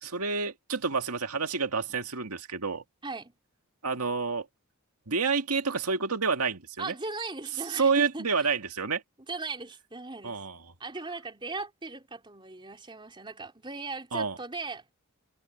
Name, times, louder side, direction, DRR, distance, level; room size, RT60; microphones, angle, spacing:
voice 1, 0.0-2.8 3.8-4.5 5.1-6.9 7.7-9.0 10.2-10.6 14.1-14.4, right 5 dB, 90° right, 2.0 m, -29 dB
voice 2, 3.0-3.3 6.8-8.3 9.3-10.4 10.8-14.9, right 3 dB, 20° right, 3.6 m, -38 dB
head